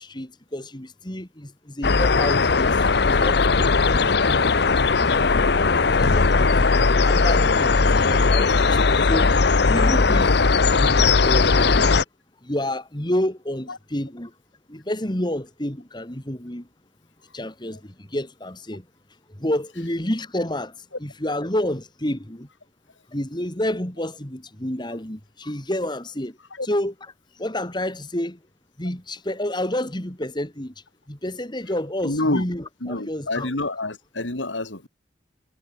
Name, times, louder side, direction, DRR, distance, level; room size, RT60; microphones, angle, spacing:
voice 1, 0.0-2.8 3.1-4.5 5.0-6.5 7.0-9.3 9.7-10.4 10.8-11.0 11.2-11.9 12.4-14.3 14.7-16.7 17.3-18.8 19.3-22.5 23.1-26.4 26.6-27.1 27.4-28.4 28.8-30.7 31.1-33.5, left 1 dB, 25° left, 2.6 m, -29 dB
sound 1, 1.8-12.0, left 4 dB, 60° left, 0.8 m, -18 dB
voice 2, 32.0-32.4 32.8-34.9, left 2 dB, 80° left, 3.0 m, -27 dB
head